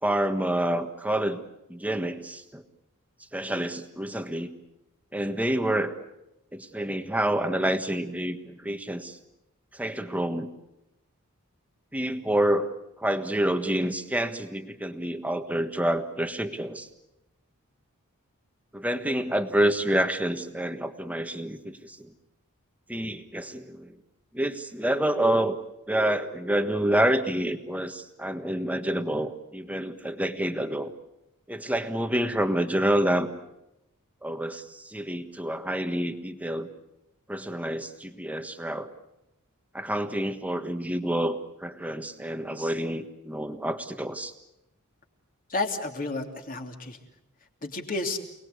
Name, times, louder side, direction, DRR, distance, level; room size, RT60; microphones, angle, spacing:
voice 1, 0.0-1.4 1.7-2.6 3.3-4.5 5.1-6.0 6.5-9.2 9.7-10.5 11.9-12.7 13.0-16.9 18.7-22.1 22.9-24.0 24.3-25.6 25.9-30.9 31.5-33.3 34.2-36.7 37.3-38.9 39.7-44.3, right 1 dB, 5° right, 8 dB, 1.5 m, -28 dB
voice 2, 45.5-47.0 47.6-48.2, left 3 dB, 40° left, 3 dB, 3.0 m, -31 dB
29.0 x 20.0 x 8.2 m, 0.89 s
head